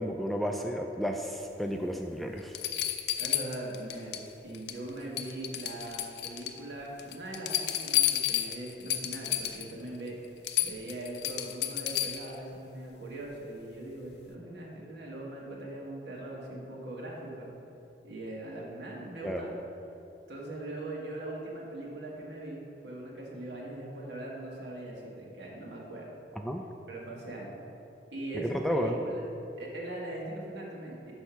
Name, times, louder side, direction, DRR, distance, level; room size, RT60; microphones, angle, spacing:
voice 1, 0.0-2.6 19.2-19.5 26.4-26.6 28.4-29.0, equal, ahead, 3 dB, 0.3 m, -32 dB
sound 1, 1.8-1.9 2.5-4.3 4.5-4.9 5.2-6.6 7.0-9.7 10.1-10.2 10.4-12.4 14.0-14.1, left 12 dB, 70° left, 0.5 m, -31 dB
voice 2, 3.2-17.5 18.0-19.5 20.3-26.2 26.9-27.6 28.1-29.2 29.6-31.1, right 1 dB, 80° right, -3 dB, 1.6 m, -41 dB
6.2 x 5.6 x 5.7 m, 2.8 s
head